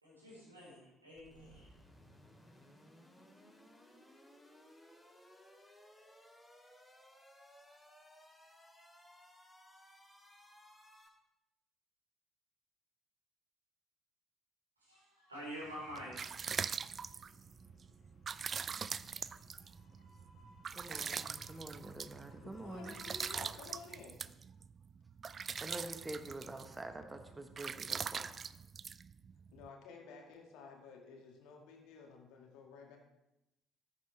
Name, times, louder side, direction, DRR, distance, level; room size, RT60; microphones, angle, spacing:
voice 1, 0.0-1.7 14.8-16.4, equal, 90° right, -6 dB, 4.4 m, -48 dB
sound 1, 1.1-11.1, equal, 5° left, 3.4 m, -61 dB
sound 2, 15.7-29.7, right 6 dB, 40° right, 0.4 m, -43 dB
sound 3, 16.7-23.5, left 2 dB, 40° left, 1.7 m, -61 dB
voice 2, 20.7-22.9 25.6-28.3, right 2 dB, 20° right, 6 dB, 1.3 m, -46 dB
voice 3, 22.4-24.2 29.5-33.0, left 4 dB, 65° left, 1 dB, 2.1 m, -53 dB
14.5 x 9.7 x 3.4 m, 0.90 s
figure-of-eight pair, 50°, 0 cm